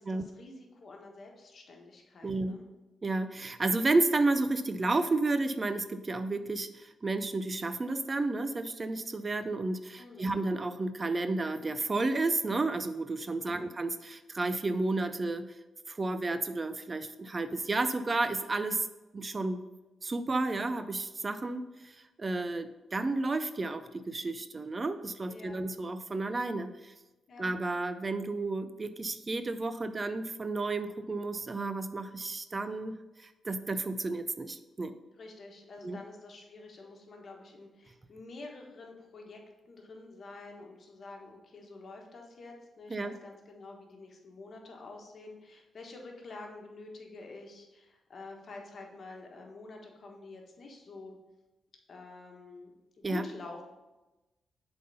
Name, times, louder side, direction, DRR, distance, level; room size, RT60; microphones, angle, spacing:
voice 1, 0.0-2.7 10.0-10.3 13.3-13.7 25.3-25.6 27.3-27.5 35.2-39.4 39.7-51.2 51.9-52.7 53.0-53.7, left 3 dB, 50° left, 1 dB, 1.3 m, -48 dB
voice 2, 2.2-2.6 3.0-15.6 15.9-18.9 19.1-19.6 20.0-26.9 27.4-35.0 35.8-36.0 42.9-43.2 53.0-53.2, right 2 dB, 30° right, 10 dB, 0.4 m, -32 dB
7.4 x 4.0 x 5.5 m, 1.1 s
cardioid pair, 95°, 0 cm